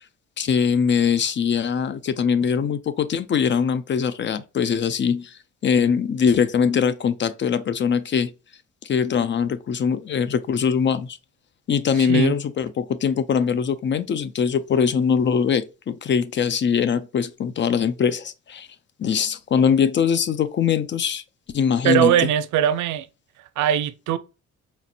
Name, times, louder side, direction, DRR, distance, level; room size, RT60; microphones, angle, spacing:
voice 1, 0.4-5.4 5.6-8.3 8.8-11.2 11.7-18.7 19.0-21.2 21.5-22.1, left 7 dB, 40° left, 0.4 m, -22 dB
voice 2, 12.0-12.3 21.8-23.1 23.6-24.2, right 11 dB, 75° right, 0.5 m, -20 dB
4.3 x 2.5 x 2.7 m
cardioid pair, 90°, 30 cm